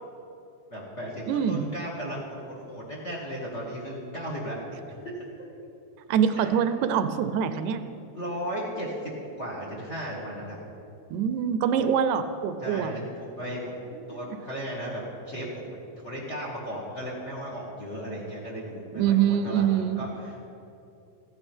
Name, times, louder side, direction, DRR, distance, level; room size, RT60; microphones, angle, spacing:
voice 1, 0.7-4.6 4.9-5.0 6.4-6.6 8.1-8.9 9.4-10.6 12.6-20.5, equal, 30° left, -3 dB, 1.5 m, -36 dB
voice 2, 1.3-1.7 6.1-7.8 11.1-12.9 14.0-14.1 19.0-20.0, right 8 dB, 85° right, 10 dB, 2.0 m, -24 dB
15.0 x 9.8 x 4.4 m, 2.6 s
omnidirectional pair, 3.4 m